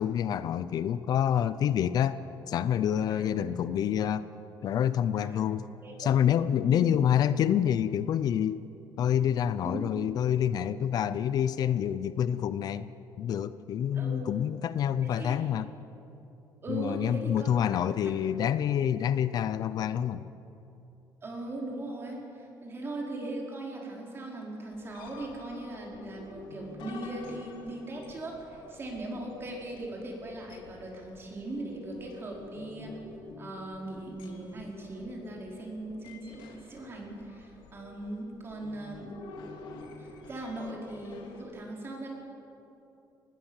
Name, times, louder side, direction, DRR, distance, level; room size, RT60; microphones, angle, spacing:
voice 1, 0.0-2.2 2.5-4.3 4.6-5.6 6.0-8.6 9.0-12.9 13.2-15.7 16.7-20.3, left 9 dB, 55° left, 14 dB, 0.6 m, -27 dB
voice 2, 5.8-6.1 6.7-6.8 9.6-9.9 13.9-14.2 15.0-15.4 16.6-18.1 21.2-33.0 33.4-39.2 40.0-42.1, right 2 dB, 30° right, -1 dB, 5.0 m, -39 dB
sound 1, 24.7-41.4, left 3 dB, 85° left, 2.9 m, -49 dB
25.0 x 20.0 x 7.4 m, 2.9 s
cardioid pair, 150°, 8 cm